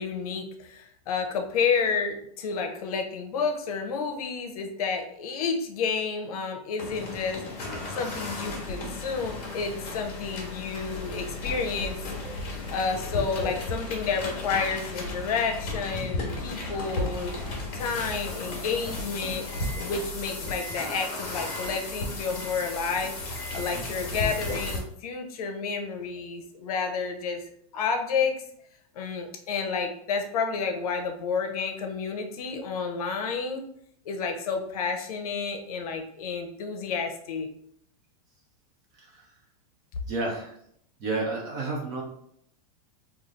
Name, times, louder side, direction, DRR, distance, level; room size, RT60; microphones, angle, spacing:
voice 1, 0.0-12.0 12.7-17.3 17.7-19.5 19.8-27.4 27.7-28.4 28.9-33.6 34.0-37.5, left 5 dB, 70° left, 5 dB, 0.7 m, -30 dB
sound 1, 6.8-24.8, left 2 dB, 35° left, 1.2 m, -34 dB
voice 2, 38.9-39.3 40.1-40.6 41.0-42.0, right 3 dB, 20° right, 0 dB, 0.4 m, -31 dB
3.2 x 2.3 x 3.8 m, 0.68 s
supercardioid pair, 180°, 20 cm